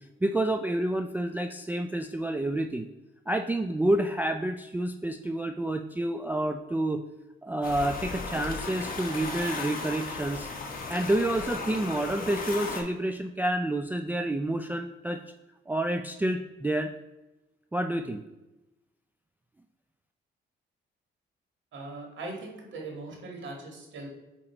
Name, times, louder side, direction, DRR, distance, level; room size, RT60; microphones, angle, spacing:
voice 1, 0.2-2.9 3.3-7.0 7.4-10.5 10.9-15.2 15.7-16.9 17.7-18.2, right 1 dB, 10° right, 6 dB, 0.3 m, -29 dB
sound 1, 7.6-12.8, left 3 dB, 45° left, 1.2 m, -36 dB
voice 2, 21.7-24.1, right 2 dB, 70° right, 1 dB, 1.8 m, -40 dB
8.6 x 3.0 x 4.4 m, 1.0 s
cardioid pair, 90°, 20 cm